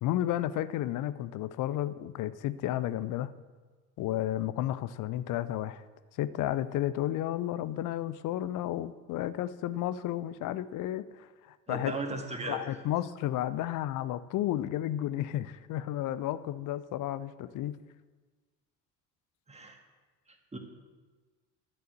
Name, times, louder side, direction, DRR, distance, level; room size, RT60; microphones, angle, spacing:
voice 1, 0.0-3.3 4.0-5.8 6.1-11.9 12.5-17.8, left 13 dB, 40° left, 15 dB, 0.6 m, -32 dB
voice 2, 11.7-12.6 19.5-19.8 20.5-20.6, right 2 dB, 15° right, 3 dB, 1.9 m, -36 dB
11.0 x 6.9 x 7.7 m, 1.4 s
figure-of-eight pair, 60°, 50 cm